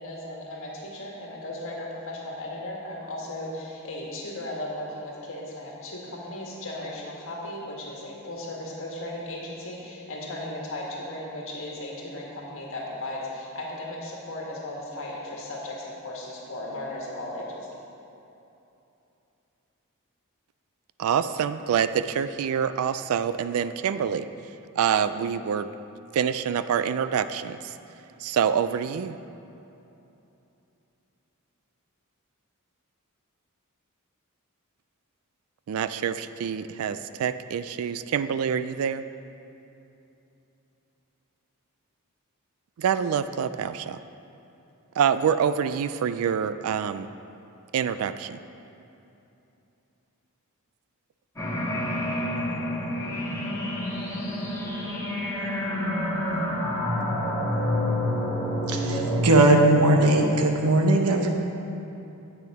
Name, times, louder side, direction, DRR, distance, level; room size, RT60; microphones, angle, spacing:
voice 1, 0.0-17.7, left 1 dB, 60° left, -3 dB, 1.7 m, -36 dB
voice 2, 21.0-24.3 24.8-25.7 26.1-27.7 28.2-29.2 35.7-39.0 42.8-44.0 45.0-47.1 47.7-48.4, right 7 dB, 65° right, 12 dB, 0.3 m, -26 dB
sound 1, 51.4-59.2, left 1 dB, 15° left, 1.7 m, -28 dB
voice 3, 58.7-61.3, right 2 dB, 85° right, 3 dB, 0.9 m, -19 dB
8.4 x 6.8 x 4.8 m, 2.8 s
head